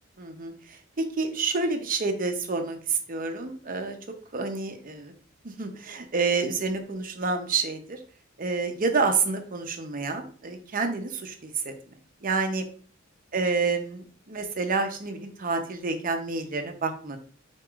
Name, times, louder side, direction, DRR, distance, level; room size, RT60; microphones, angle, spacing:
voice 1, 0.2-0.5 1.0-4.0 4.3-5.1 5.4-8.0 8.4-11.7 12.2-12.6 13.3-17.2, right 4 dB, 40° right, 5 dB, 0.7 m, -28 dB
4.6 x 4.4 x 2.4 m, 0.43 s
head